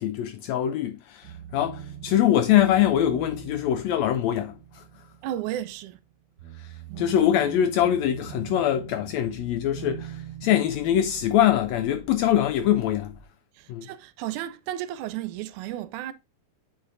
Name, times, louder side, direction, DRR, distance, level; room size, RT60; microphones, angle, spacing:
voice 1, 0.0-5.0 6.6-13.2 13.7-13.9, left 11 dB, 80° left, 1.6 m, -23 dB
sound 1, 1.2-6.1 6.4-13.3, right 10 dB, 45° right, 1.5 m, -43 dB
voice 2, 5.2-6.0 13.6-16.1, right 12 dB, 80° right, 2.0 m, -33 dB
8.6 x 4.8 x 2.5 m
omnidirectional pair, 3.5 m